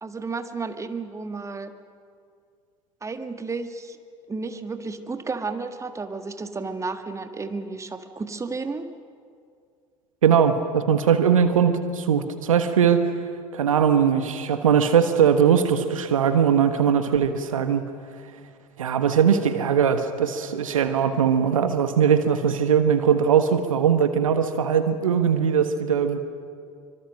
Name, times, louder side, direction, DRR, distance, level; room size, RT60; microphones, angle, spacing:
voice 1, 0.0-1.7 3.0-4.0 4.3-8.9, right 4 dB, 15° right, 8 dB, 1.7 m, -32 dB
voice 2, 10.2-13.0 13.5-17.8 18.8-26.2, right 7 dB, 75° right, 9 dB, 1.3 m, -20 dB
26.0 x 25.0 x 6.4 m, 2.3 s
figure-of-eight pair, 65°, 17 cm